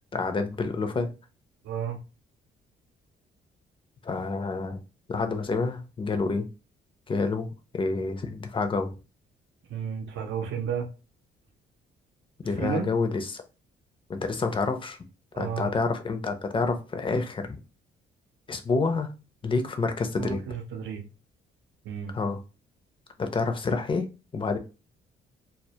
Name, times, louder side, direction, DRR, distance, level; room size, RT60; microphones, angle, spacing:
voice 1, 0.1-1.1 4.0-4.8 5.1-6.5 7.1-7.5 7.7-8.9 12.4-13.4 14.1-15.0 15.4-17.6 18.5-19.1 19.4-20.4 22.1-22.4 23.2-24.1 24.3-24.6, left 4 dB, 25° left, 0.5 m, -28 dB
voice 2, 1.6-2.0 9.7-10.9 12.6-12.9 15.3-15.7 20.2-21.0 21.8-22.2, right 7 dB, 70° right, 0.6 m, -32 dB
2.1 x 2.0 x 2.8 m
cardioid pair, 90°, 20 cm